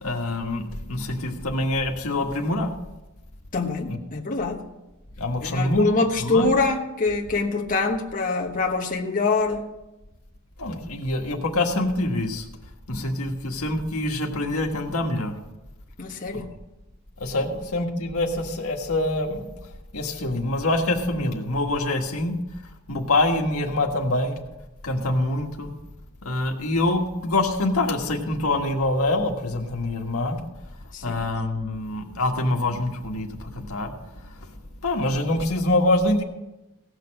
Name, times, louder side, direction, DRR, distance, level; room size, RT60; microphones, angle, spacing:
voice 1, 0.0-2.7 3.9-4.0 5.2-5.9 6.2-6.5 10.6-12.5 12.9-15.3 16.3-16.5 17.2-19.5 19.9-22.3 22.9-24.4 24.8-25.7 26.2-30.4 31.0-33.9 34.2-34.5 34.8-36.2, left 2 dB, 90° left, 2 dB, 1.6 m, -25 dB
voice 2, 3.5-4.7 5.4-9.6 16.0-16.5 30.9-31.3, left 3 dB, 40° left, 0 dB, 1.2 m, -24 dB
16.5 x 6.7 x 6.4 m, 0.99 s
head